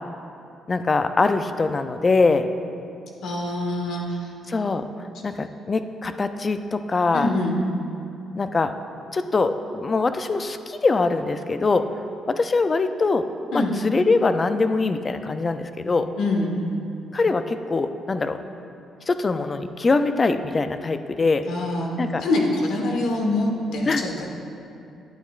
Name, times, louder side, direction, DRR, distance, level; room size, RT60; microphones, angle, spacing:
voice 1, 0.7-2.5 4.5-4.9 5.2-7.3 8.3-8.7 9.1-11.9 12.3-13.3 13.5-16.1 17.1-18.4 19.1-21.5 22.0-22.2 23.9-24.0, left 3 dB, 30° left, 9 dB, 0.4 m, -23 dB
voice 2, 3.2-4.3 7.1-7.6 13.5-13.7 16.2-16.6 21.5-21.9 22.2-24.3, left 2 dB, 75° left, -1 dB, 1.3 m, -24 dB
11.5 x 8.4 x 2.4 m, 2.6 s
cardioid pair, 90°, 0 cm